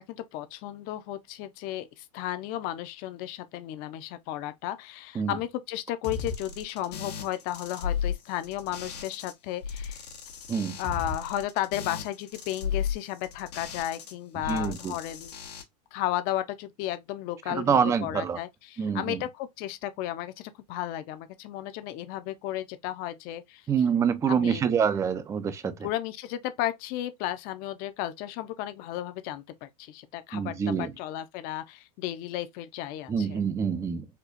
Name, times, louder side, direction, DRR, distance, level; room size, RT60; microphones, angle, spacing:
voice 1, 0.0-10.0 10.8-15.3 15.9-23.6 24.3-24.6 25.6-33.4, left 13 dB, 45° left, 0.7 m, -34 dB
sound 1, 6.0-9.3 9.6-14.1 14.4-15.6, left 7 dB, 90° left, 1.3 m, -35 dB
voice 2, 14.5-15.0 17.5-18.4 18.8-19.2 23.7-25.9 30.3-30.9 33.1-34.1, right 7 dB, 15° right, 0.4 m, -26 dB
4.3 x 2.4 x 2.5 m
supercardioid pair, 130°, 20 cm